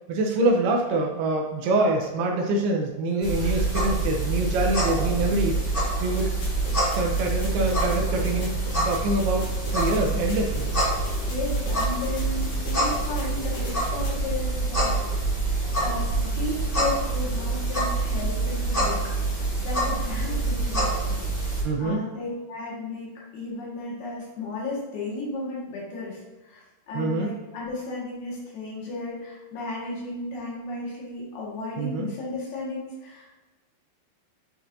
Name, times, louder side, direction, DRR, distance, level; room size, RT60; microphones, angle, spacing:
voice 1, 0.1-6.3 6.9-8.5 8.8-9.5 9.7-10.7 21.6-22.0 26.9-27.3 31.8-32.1, right 2 dB, 80° right, 1 dB, 2.5 m, -25 dB
sound 1, 3.2-21.6, right 2 dB, 50° left, 0.6 m, -26 dB
sound 2, 6.2-14.2, left 4 dB, 90° left, 4.1 m, -41 dB
voice 2, 11.3-15.2 15.7-33.3, left 2 dB, 70° left, -6 dB, 3.6 m, -34 dB
8.8 x 4.6 x 2.7 m, 1.2 s
omnidirectional pair, 4.8 m